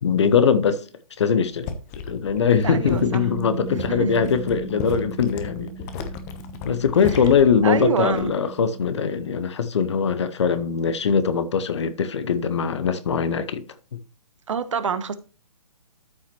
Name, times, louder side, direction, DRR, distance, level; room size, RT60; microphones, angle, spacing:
voice 1, 0.0-0.9 1.2-1.7 2.1-5.7 6.6-13.6, left 6 dB, 50° left, 1.1 m, -21 dB
sound 1, 1.5-8.5 8.8-9.2, left 5 dB, 25° left, 1.1 m, -35 dB
voice 2, 2.6-3.3 3.7-4.3 7.6-8.3 14.5-15.1, right 6 dB, 55° right, 1.2 m, -26 dB
Bass guitar, 3.0-9.2, right 7 dB, 65° left, 5.2 m, -39 dB
13.0 x 5.7 x 3.1 m
figure-of-eight pair, 135°, 19 cm